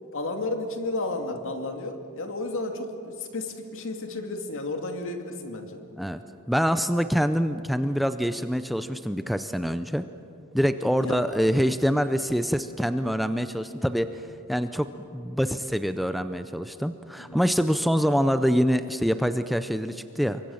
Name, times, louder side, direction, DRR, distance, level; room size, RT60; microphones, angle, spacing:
voice 1, 0.1-5.8 11.0-11.2 17.2-17.4, left 2 dB, 60° left, 5 dB, 2.4 m, -32 dB
voice 2, 6.5-10.1 10.5-20.4, equal, ahead, 9 dB, 0.5 m, -25 dB
27.5 x 23.5 x 7.1 m, 2.7 s
head